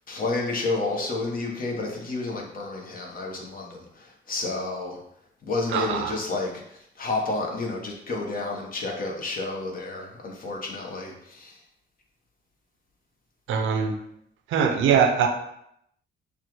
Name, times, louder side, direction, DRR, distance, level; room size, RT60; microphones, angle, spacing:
voice 1, 0.1-5.0 5.4-11.6, left 3 dB, 45° left, 0 dB, 1.1 m, -30 dB
voice 2, 5.7-6.2 13.5-13.9 14.5-15.3, right 7 dB, 80° right, 5 dB, 0.6 m, -22 dB
5.6 x 2.4 x 3.1 m, 0.75 s
cardioid pair, 90°, 20 cm